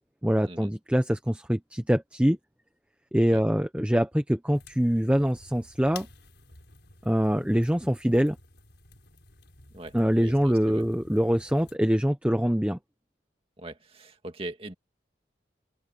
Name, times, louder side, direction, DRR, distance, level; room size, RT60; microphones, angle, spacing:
voice 1, 0.2-2.4 3.1-6.1 7.0-8.4 9.9-12.8, equal, 5° right, 0.9 m, -24 dB
sound 1, 4.5-11.8, left 4 dB, 65° left, 6.2 m, -52 dB
voice 2, 9.7-10.8 13.6-14.7, right 2 dB, 30° right, 2.3 m, -41 dB
open air
head